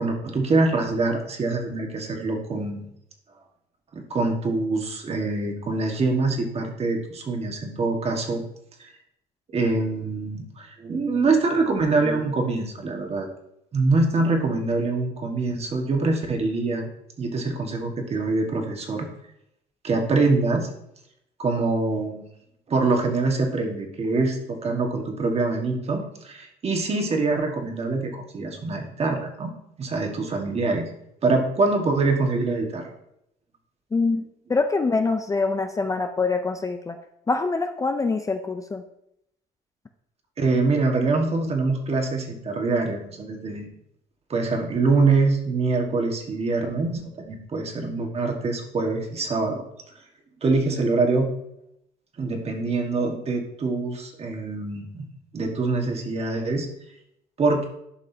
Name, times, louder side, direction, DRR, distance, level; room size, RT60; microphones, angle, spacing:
voice 1, 0.0-2.9 3.9-8.4 8.8-8.9 9.5-13.3 13.7-16.9 17.2-19.1 19.8-20.7 21.4-22.3 22.7-29.5 29.8-30.9 31.2-32.9 40.4-43.7 44.3-49.6 50.4-51.3 52.2-55.1 55.3-56.7 57.4-57.7, right 3 dB, 35° right, 2 dB, 1.6 m, -24 dB
voice 2, 33.9-34.2 34.5-37.0 37.3-38.8, left 3 dB, 20° left, 6 dB, 0.5 m, -24 dB
11.5 x 5.3 x 2.8 m, 0.78 s
cardioid pair, 110°, 17 cm